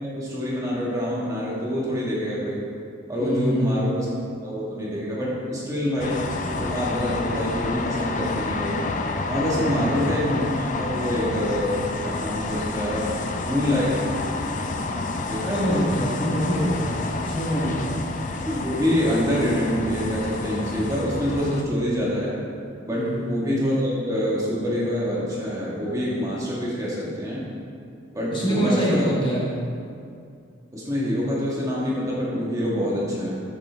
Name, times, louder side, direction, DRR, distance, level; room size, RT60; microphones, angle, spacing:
voice 1, 0.2-2.6 3.1-4.1 4.4-6.2 6.6-8.8 9.3-13.1 13.5-13.9 15.3-15.9 18.4-22.3 22.8-27.5 28.1-29.1 30.7-33.4, equal, 15° right, -6 dB, 1.5 m, -26 dB
voice 2, 3.2-3.8 9.6-9.9 15.5-17.0 17.3-18.0 23.0-23.3 28.3-29.5, equal, 25° left, -6 dB, 1.2 m, -24 dB
sound 1, 6.0-21.6, left 3 dB, 40° left, 0.5 m, -29 dB
8.9 x 7.1 x 3.5 m, 2.4 s
head